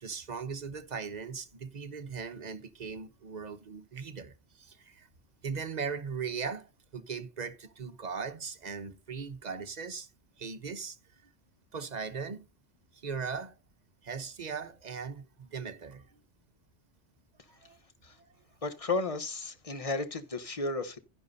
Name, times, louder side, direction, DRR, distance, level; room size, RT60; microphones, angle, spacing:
voice 1, 0.0-5.1 5.4-6.7 6.9-10.1 10.4-11.0 11.7-12.4 13.0-13.5 14.0-16.0 17.6-17.8, right 5 dB, 40° right, 1.0 m, -38 dB
voice 2, 18.6-21.0, left 3 dB, 30° left, 1.0 m, -33 dB
12.0 x 10.0 x 2.7 m
omnidirectional pair, 1.2 m